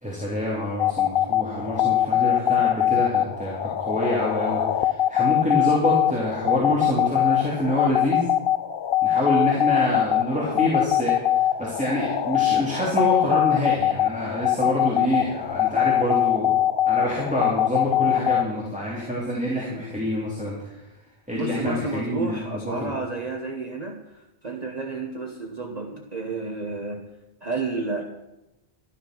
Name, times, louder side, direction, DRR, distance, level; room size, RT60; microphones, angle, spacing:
voice 1, 0.0-8.3 9.0-16.6 16.9-20.7 21.3-22.9, left 1 dB, 5° right, -5 dB, 3.1 m, -26 dB
sound 1, 0.8-18.4, left 11 dB, 60° left, 0.8 m, -23 dB
voice 2, 21.3-27.0 27.4-28.0, right 3 dB, 40° right, 2 dB, 1.3 m, -31 dB
13.0 x 11.0 x 6.1 m, 0.94 s
omnidirectional pair, 1.1 m